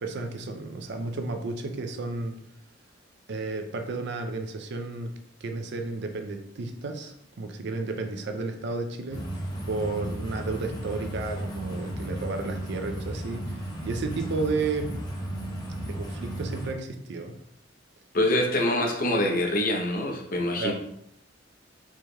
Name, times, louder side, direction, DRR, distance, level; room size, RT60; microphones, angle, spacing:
voice 1, 0.0-2.4 3.3-5.1 5.4-9.3 9.7-15.0 15.9-17.4 20.6-20.7, right 3 dB, 65° right, 6 dB, 0.4 m, -32 dB
sound 1, 9.1-16.7, right 1 dB, 20° left, 0.7 m, -34 dB
voice 2, 18.1-20.7, left 1 dB, 50° left, 2 dB, 0.7 m, -25 dB
4.3 x 3.2 x 2.3 m, 0.74 s
head